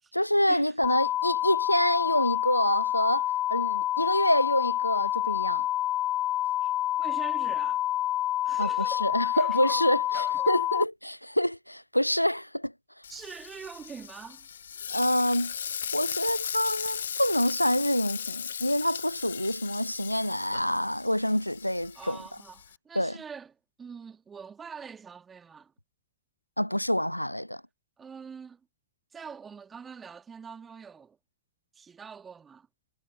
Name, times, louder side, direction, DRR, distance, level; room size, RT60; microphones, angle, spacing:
voice 1, 0.1-5.7 8.6-12.7 14.9-15.5 15.9-22.2 23.0-23.2 26.6-27.6, equal, 90° left, 0.5 m, -27 dB
sound 1, 0.8-10.8, left 13 dB, 30° left, 0.4 m, -28 dB
voice 2, 7.0-7.8 8.4-9.9 10.1-10.6 13.1-14.5 21.9-23.5 23.8-25.7 28.0-28.6 29.1-31.2 31.7-32.7, right 6 dB, 20° right, 2.6 m, -44 dB
Frying (food), 13.0-22.8, left 8 dB, 70° left, 0.9 m, -37 dB
figure-of-eight pair, 90°, 0 cm